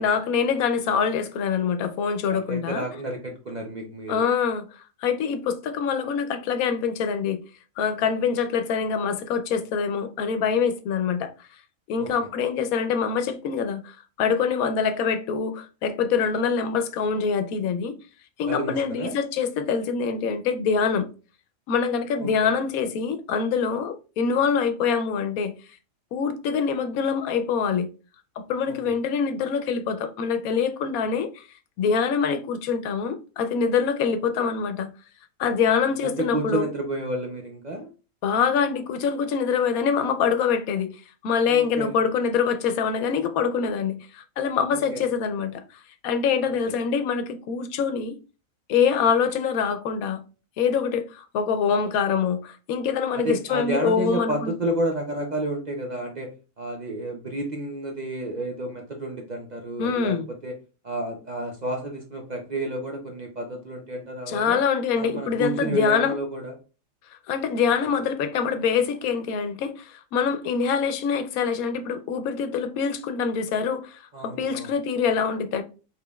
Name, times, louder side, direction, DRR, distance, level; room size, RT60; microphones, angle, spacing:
voice 1, 0.0-2.8 4.1-7.4 7.8-11.3 11.9-18.0 18.4-21.1 21.7-25.5 26.1-27.9 28.4-31.5 31.8-34.9 35.4-36.7 38.2-41.0 41.2-48.2 48.7-50.2 50.6-54.5 59.8-60.3 64.3-66.2 67.3-75.6, left 6 dB, 90° left, 1.1 m, -25 dB
voice 2, 2.3-4.3 12.0-12.1 18.5-19.1 22.2-22.5 28.7-28.9 36.0-37.9 41.5-42.0 44.7-45.0 46.7-46.8 53.1-60.5 60.8-64.6 64.9-66.5 74.1-74.7, right 1 dB, 50° right, 0.5 m, -31 dB
4.9 x 3.3 x 2.3 m
omnidirectional pair, 1.5 m